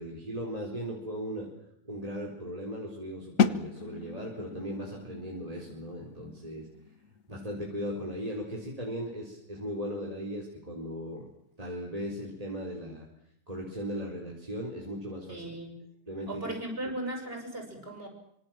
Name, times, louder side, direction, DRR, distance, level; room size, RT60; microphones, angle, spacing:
voice 1, 0.0-1.5 1.8-6.7 7.3-11.3 11.6-13.1 13.5-15.5 16.1-16.5, equal, 25° right, -1 dB, 4.5 m, -37 dB
sound 1, 3.4-9.1, left 6 dB, 85° left, 1.7 m, -34 dB
voice 2, 15.3-15.7 16.3-18.1, right 1 dB, 45° right, 3 dB, 7.6 m, -37 dB
26.0 x 25.5 x 7.6 m, 0.74 s
omnidirectional pair, 1.4 m